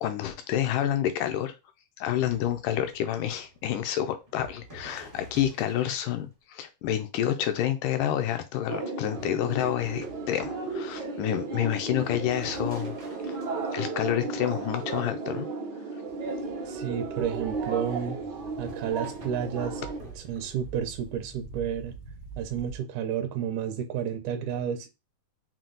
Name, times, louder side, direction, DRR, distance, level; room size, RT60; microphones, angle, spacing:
voice 1, 0.0-1.6 2.0-13.0 13.7-15.5, left 11 dB, 80° left, 2.2 m, -28 dB
sound 1, 2.2-6.2 9.2-14.9 18.6-20.8, right 1 dB, 30° right, 0.8 m, -48 dB
sound 2, 8.7-20.0, right 3 dB, 55° right, 1.2 m, -34 dB
sound 3, 16.1-22.8, right 5 dB, 35° left, 0.7 m, -47 dB
voice 2, 16.7-18.2 18.6-19.8 20.1-21.9 22.4-24.9, right 8 dB, 75° right, 2.0 m, -31 dB
5.9 x 2.4 x 3.8 m
omnidirectional pair, 3.7 m